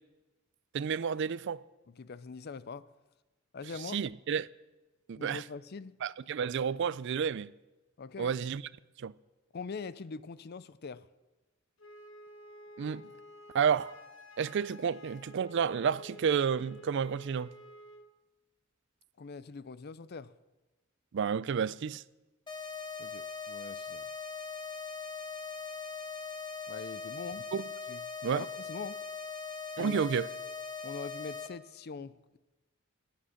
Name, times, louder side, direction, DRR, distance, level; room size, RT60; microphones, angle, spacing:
voice 1, 0.7-1.6 3.9-4.5 5.1-5.4 6.0-7.5 8.2-8.6 9.0-9.1 12.8-13.0 13.5-13.9 14.4-17.5 21.1-22.0 27.5-27.6 28.2-28.5 29.8-30.3, right 7 dB, 55° right, 0.4 m, -30 dB
voice 2, 2.0-2.8 3.5-4.0 5.2-5.9 8.0-8.4 9.5-11.1 19.2-20.3 23.0-24.1 26.7-27.5 27.9-28.0 28.3-29.0 29.8-30.0 30.8-32.4, left 4 dB, 50° left, 0.5 m, -43 dB
Wind instrument woodwind instrument, 11.8-18.1, equal, 65° left, 1.3 m, -51 dB
sound 1, 22.5-31.5, left 5 dB, 20° left, 0.9 m, -41 dB
18.5 x 8.7 x 6.5 m
head